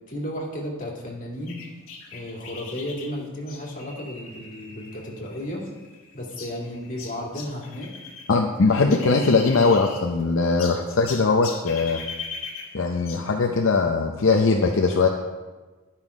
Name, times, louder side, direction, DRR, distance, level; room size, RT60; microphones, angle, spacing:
voice 1, 0.1-1.6 2.1-5.6 6.1-7.9 8.8-9.0, left 1 dB, 40° left, -3 dB, 2.3 m, -33 dB
sound 1, 1.5-8.3 8.6-10.2 10.6-13.3, left 5 dB, 80° left, 1.7 m, -40 dB
voice 2, 8.3-12.0 12.7-15.1, left 4 dB, 65° left, 1 dB, 0.6 m, -20 dB
11.0 x 5.8 x 4.8 m, 1.3 s
head